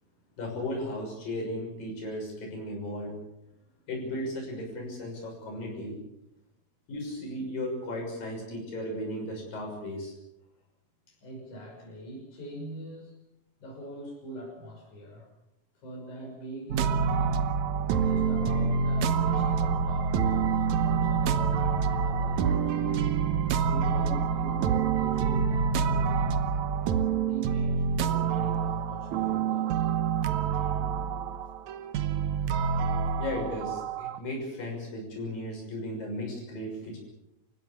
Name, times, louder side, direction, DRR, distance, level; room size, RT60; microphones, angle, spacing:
voice 1, 0.4-3.2 3.9-5.9 6.9-10.1 32.6-32.8 33.2-37.0, left 1 dB, 80° left, 0 dB, 8.1 m, -35 dB
voice 2, 11.1-13.2 13.6-15.3 15.8-17.5 18.0-23.0 23.5-26.6 27.3-29.7, right 1 dB, 60° left, -1 dB, 7.4 m, -43 dB
sound 1, 16.7-34.2, right 6 dB, 70° right, 2.2 m, -27 dB
29.0 x 16.0 x 7.3 m, 0.87 s
omnidirectional pair, 3.9 m